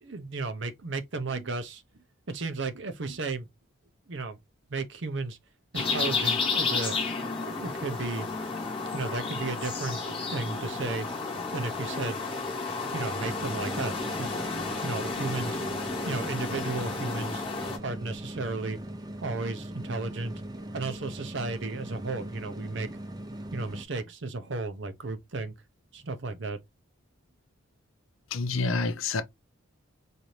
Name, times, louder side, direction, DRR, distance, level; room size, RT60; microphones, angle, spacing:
voice 1, 0.0-1.8 2.3-3.5 4.1-4.4 4.7-5.4 5.7-7.0 7.4-8.3 8.9-11.1 11.5-12.2 12.9-15.6 16.1-17.4 17.8-18.8 19.2-20.4 20.7-22.9 23.5-25.5 25.9-26.6, right 3 dB, 55° right, 0.7 m, -34 dB
sound 1, 5.7-17.8, left 4 dB, 25° left, 1.1 m, -32 dB
sound 2, 13.2-23.9, right 1 dB, 20° right, 0.5 m, -40 dB
voice 2, 28.3-29.2, left 3 dB, 75° left, 0.6 m, -28 dB
4.2 x 2.7 x 3.1 m
head